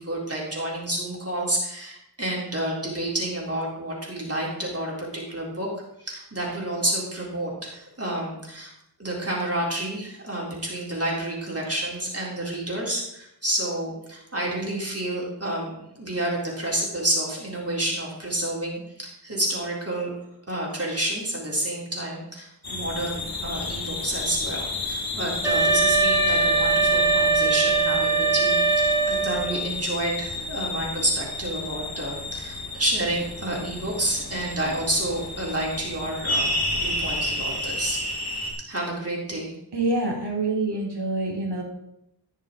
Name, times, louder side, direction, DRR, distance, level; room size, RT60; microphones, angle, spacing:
voice 1, 0.0-5.7 6.0-8.7 9.0-20.1 20.5-38.0 38.7-39.5, right 1 dB, 35° right, -4 dB, 3.7 m, -29 dB
sound 1, 22.6-38.5, left 2 dB, 60° left, 3.1 m, -31 dB
Wind instrument woodwind instrument, 25.4-29.6, right 4 dB, 10° right, 2.4 m, -21 dB
voice 2, 39.7-41.6, right 2 dB, 75° right, -1 dB, 3.2 m, -26 dB
17.0 x 6.6 x 3.9 m, 0.79 s
wide cardioid pair, 65°, 41 cm